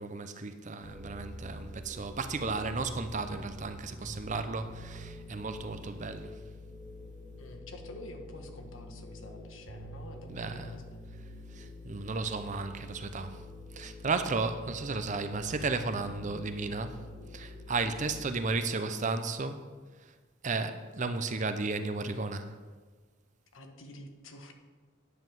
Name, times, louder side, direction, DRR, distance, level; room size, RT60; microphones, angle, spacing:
voice 1, 0.0-6.4 10.3-10.7 11.5-13.4 13.7-17.0 17.3-19.7 20.0-20.1 20.4-22.6, right 3 dB, 35° right, 0.6 m, -34 dB
sound 1, 0.8-18.2, equal, 55° left, 2.1 m, -46 dB
voice 2, 7.4-11.1 17.9-18.2 23.5-24.5, left 1 dB, 70° left, 1.3 m, -48 dB
9.7 x 5.4 x 7.6 m
head